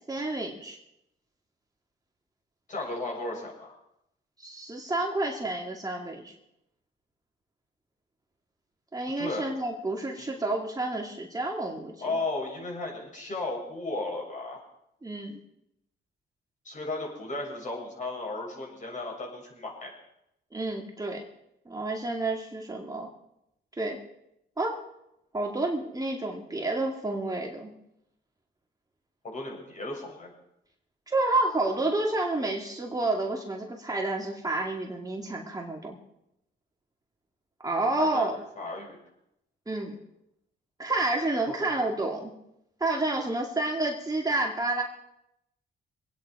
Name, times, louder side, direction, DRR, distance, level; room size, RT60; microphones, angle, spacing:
voice 1, 0.1-0.8 4.4-6.3 8.9-11.9 15.0-15.4 20.5-21.3 21.7-23.1 23.8-24.0 24.6-24.8 25.3-27.7 31.1-36.0 37.6-38.4 39.7-40.0 40.8-42.3 42.8-44.8, right 2 dB, 20° right, 0 dB, 2.1 m, -29 dB
voice 2, 2.7-3.7 9.2-9.5 10.2-10.3 12.0-14.6 16.6-19.9 29.2-30.3 38.0-38.3 38.6-39.0 41.6-41.9, left 2 dB, 40° left, -1 dB, 7.2 m, -35 dB
25.0 x 9.5 x 4.8 m, 0.82 s
cardioid pair, 90°, 20 cm